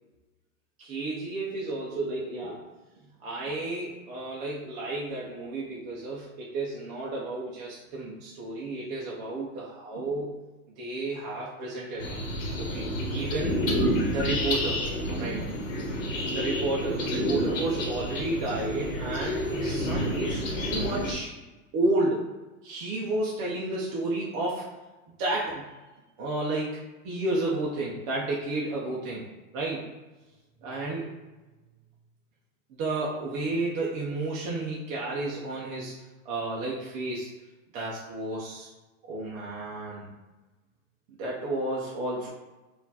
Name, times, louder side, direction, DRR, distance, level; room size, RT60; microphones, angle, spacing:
voice 1, 0.8-2.6 3.2-10.4 10.8-12.1 12.6-13.6 14.1-14.8 15.1-15.4 16.3-21.3 21.7-22.3 22.6-24.7 25.2-25.7 26.2-26.8 27.0-29.3 29.5-29.9 30.6-31.1 32.7-35.9 36.2-37.3 37.7-38.7 39.1-40.1 41.1-42.3, right 2 dB, 20° right, -5 dB, 0.3 m, -31 dB
sound 1, 12.0-21.1, equal, 65° left, 1.1 m, -29 dB
4.1 x 2.4 x 4.0 m, 1.1 s
supercardioid pair, 135°, 42 cm